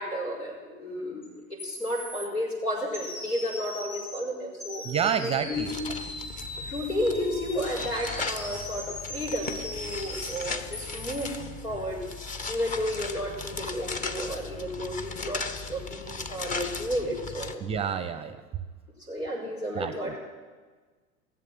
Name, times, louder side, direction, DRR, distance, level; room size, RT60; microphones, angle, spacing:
voice 1, 0.0-4.8 5.2-5.7 6.6-12.0 12.5-17.6 19.0-20.2, equal, 85° left, -3 dB, 4.5 m, -32 dB
sound 1, 1.2-1.3 1.6-2.3 2.9-4.2 4.6-11.3, left 1 dB, 60° left, 3.2 m, -40 dB
voice 2, 4.8-5.7 17.6-18.4 19.7-20.1, right 7 dB, 15° right, 10 dB, 0.6 m, -29 dB
sound 2, 5.5-17.5, left 4 dB, 20° left, 0.8 m, -37 dB
17.0 x 7.6 x 7.7 m, 1.4 s
figure-of-eight pair, 90°, 42 cm